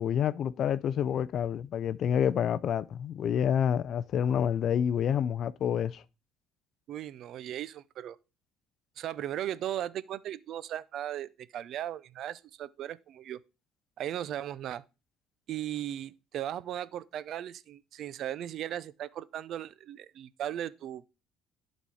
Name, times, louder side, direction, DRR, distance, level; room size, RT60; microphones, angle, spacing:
voice 1, 0.0-6.0, left 8 dB, 50° left, 0.5 m, -28 dB
voice 2, 6.9-8.2 9.0-13.4 14.0-14.8 15.5-21.1, right 11 dB, 55° right, 0.5 m, -37 dB
11.5 x 4.2 x 4.9 m
cardioid pair, 135°, 0 cm